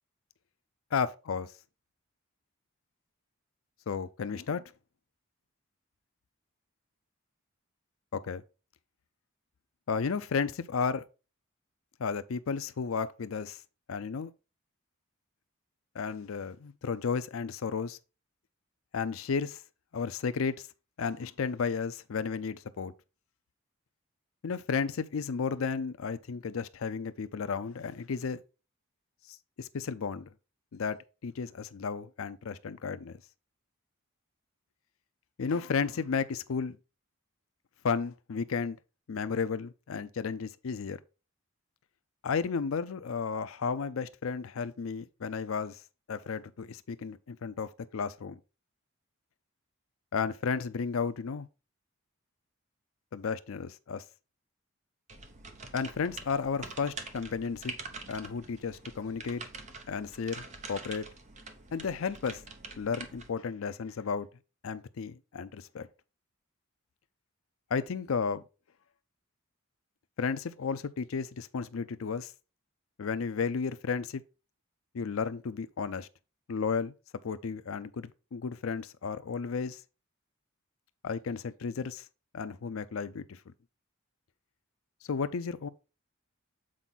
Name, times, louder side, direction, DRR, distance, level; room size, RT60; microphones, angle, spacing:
voice 1, 0.9-1.5 3.9-4.6 8.1-8.4 9.9-11.0 12.0-13.6 13.9-14.3 16.0-18.0 18.9-19.6 19.9-20.6 21.0-22.9 24.4-28.4 29.6-30.3 30.7-31.0 31.2-33.2 35.4-36.8 37.8-38.8 39.1-41.0 42.2-45.8 46.1-48.4 50.1-51.5 53.1-54.0 55.7-57.7 58.1-59.4 59.9-61.1 61.7-62.4 62.8-64.3 64.6-65.9 67.7-68.4 70.2-72.3 73.0-74.2 74.9-76.1 76.5-76.9 77.2-79.8 81.0-82.0 82.3-83.4 85.1-85.7, left 5 dB, 70° left, 0.5 m, -33 dB
sound 1, 55.1-63.3, right 4 dB, 35° right, 0.9 m, -45 dB
7.5 x 4.5 x 4.0 m
head